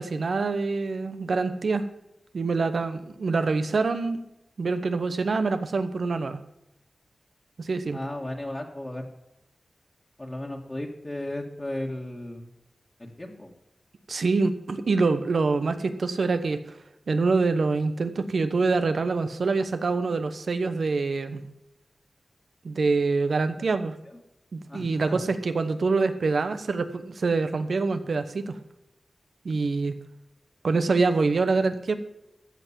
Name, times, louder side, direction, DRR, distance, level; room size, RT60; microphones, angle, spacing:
voice 1, 0.0-1.8 2.3-4.2 4.6-6.4 7.6-8.0 14.1-16.8 17.1-21.4 22.6-23.9 24.5-28.6 29.4-30.0 30.6-31.9, right 4 dB, 75° right, 10 dB, 1.0 m, -25 dB
voice 2, 7.9-9.1 10.2-12.5 13.0-13.5 24.1-24.2 24.7-25.3, left 1 dB, 30° left, -1 dB, 1.9 m, -35 dB
14.5 x 5.8 x 7.4 m, 0.89 s
cardioid pair, 50°, 0 cm